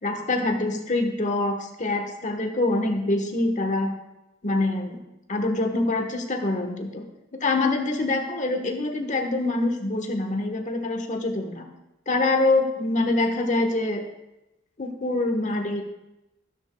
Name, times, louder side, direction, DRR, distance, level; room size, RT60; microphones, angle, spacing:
voice 1, 0.0-4.0 4.4-5.0 5.3-7.0 7.4-11.7 12.1-14.0 14.8-15.8, left 2 dB, 40° left, 4 dB, 1.3 m, -25 dB
14.0 x 11.5 x 2.3 m, 0.93 s
head